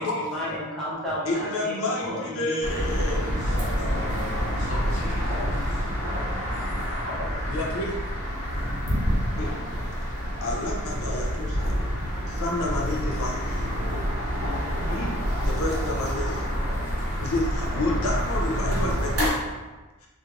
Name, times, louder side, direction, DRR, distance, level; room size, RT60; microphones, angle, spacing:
voice 1, 0.0-3.9, equal, ahead, -9 dB, 0.7 m, -34 dB
voice 2, 1.3-3.2 4.7-4.8 7.5-7.9 9.4-9.5 10.4-11.5 12.4-13.3 14.9-15.1 15.6-16.3 17.2-17.4 17.7-19.3, left 2 dB, 70° left, -1 dB, 0.5 m, -29 dB
sound 1, 2.6-19.3, equal, 75° right, 0.7 m, -27 dB
voice 3, 3.2-5.4, left 1 dB, 35° right, -9 dB, 1.1 m, -40 dB
2.8 x 2.1 x 2.4 m, 1.2 s
head